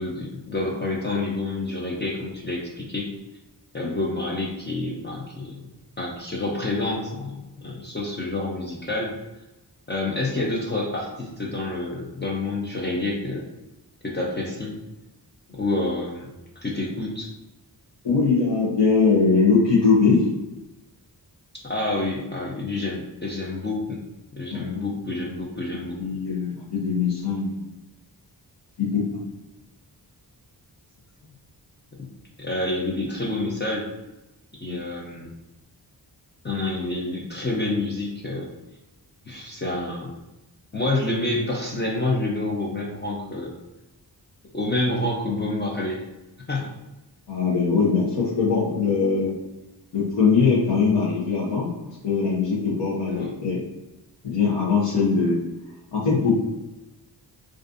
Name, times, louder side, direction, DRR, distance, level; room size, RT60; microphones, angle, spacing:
voice 1, 0.0-3.1 3.7-5.6 6.0-9.2 9.9-13.5 14.0-14.7 15.6-16.3 16.6-17.3 21.6-24.0 24.3-26.0 32.4-33.9 34.6-35.3 36.4-38.5 39.3-40.1 40.7-43.5 44.5-46.0 46.5-46.7 53.1-53.3, left 2 dB, 25° left, -3 dB, 0.4 m, -28 dB
voice 2, 18.0-20.3 24.5-25.0 26.0-27.6 28.8-29.2 34.6-34.8 47.3-49.4 49.9-51.7 52.0-53.6 54.2-55.4 55.9-56.4, left 5 dB, 80° left, -8 dB, 0.7 m, -21 dB
2.4 x 2.4 x 2.4 m, 0.99 s
wide cardioid pair, 100°, 42 cm